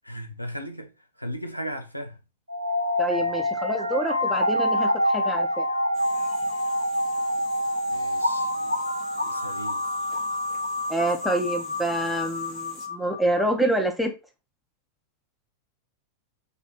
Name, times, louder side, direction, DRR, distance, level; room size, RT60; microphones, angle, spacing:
voice 1, 0.0-0.9 1.2-2.2 7.9-8.8 9.2-9.8, equal, 90° left, 0.6 m, -36 dB
sound 1, 2.5-13.4, left 1 dB, 90° right, 0.4 m, -27 dB
voice 2, 3.0-5.6 10.9-14.1, right 1 dB, ahead, 1.0 m, -27 dB
sound 2, 5.9-12.9, left 4 dB, 30° left, 1.1 m, -47 dB
5.0 x 3.0 x 3.0 m
figure-of-eight pair, 90°, 0 cm